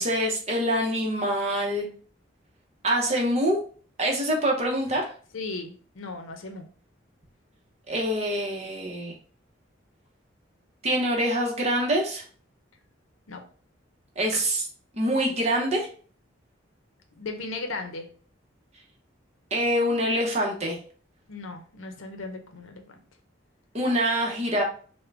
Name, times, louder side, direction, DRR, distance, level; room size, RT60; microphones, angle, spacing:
voice 1, 0.0-1.9 2.8-3.6 4.0-5.1 7.9-9.1 10.8-12.2 14.2-14.7 14.9-15.9 19.5-20.8 23.7-24.6, equal, 35° right, 0 dB, 0.7 m, -25 dB
voice 2, 5.3-6.7 13.3-13.4 17.2-18.1 21.3-23.0, left 3 dB, 85° left, 5 dB, 0.6 m, -36 dB
3.6 x 2.1 x 3.2 m, 0.43 s
head